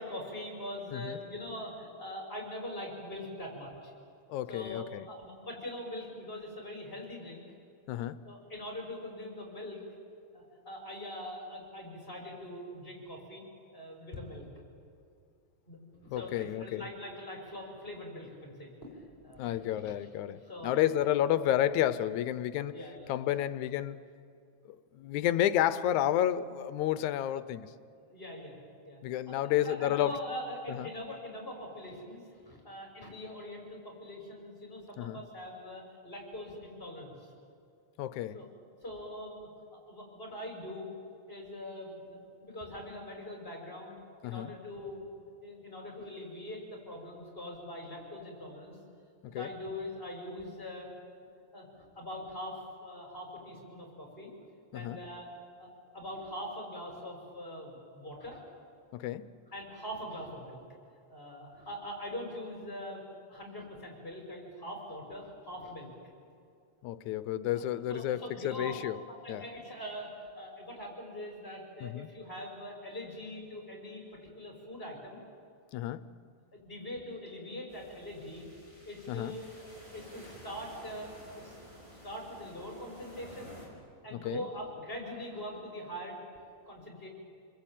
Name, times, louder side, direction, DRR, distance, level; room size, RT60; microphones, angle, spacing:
voice 1, 0.0-3.9 4.5-7.4 8.2-9.8 10.3-13.4 13.7-14.5 15.7-19.9 20.4-20.8 22.7-23.1 28.1-28.6 28.8-29.0 29.3-37.3 38.3-38.5 38.8-40.9 41.3-44.0 44.2-48.8 49.3-50.9 51.5-54.3 54.7-55.3 55.6-55.7 55.9-58.4 59.5-60.6 61.1-63.0 63.3-65.9 67.5-67.6 67.9-68.8 69.2-70.1 70.4-74.0 74.4-75.2 76.5-78.5 78.9-79.5 79.9-81.6 81.9-83.5 84.0-86.2 86.7-87.1, left 1 dB, 15° left, 0 dB, 6.0 m, -42 dB
voice 2, 4.3-5.0 7.9-8.2 16.1-16.8 19.4-22.8 23.1-24.0 24.9-27.7 29.0-30.1 30.7-30.9 35.0-35.2 38.0-38.4 44.2-44.5 49.2-49.5 54.7-55.0 58.9-59.3 66.8-69.0 69.3-69.4 71.8-72.1 75.7-76.1 79.1-79.3 84.1-84.5, left 12 dB, 85° left, 14 dB, 2.2 m, -31 dB
sound 1, 77.7-83.7, equal, 10° right, 5.9 m, -52 dB
28.5 x 21.0 x 9.0 m, 2.3 s
omnidirectional pair, 3.3 m